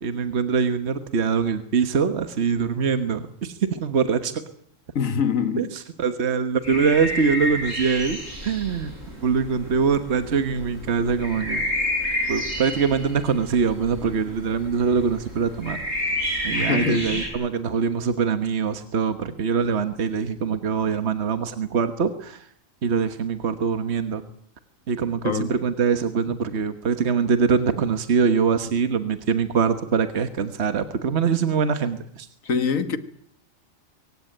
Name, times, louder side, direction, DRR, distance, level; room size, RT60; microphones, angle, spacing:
voice 1, 0.0-4.4 5.6-8.9 9.2-11.6 12.3-15.8 16.4-22.4 22.8-24.2 24.9-32.3, right 6 dB, 55° right, 1.6 m, -23 dB
voice 2, 4.9-5.7 16.5-17.2 25.2-25.6 32.4-33.0, left 6 dB, 85° left, 1.8 m, -25 dB
sound 1, 6.6-17.3, left 1 dB, 75° right, 7.5 m, -30 dB
23.5 x 16.5 x 9.0 m
omnidirectional pair, 1.3 m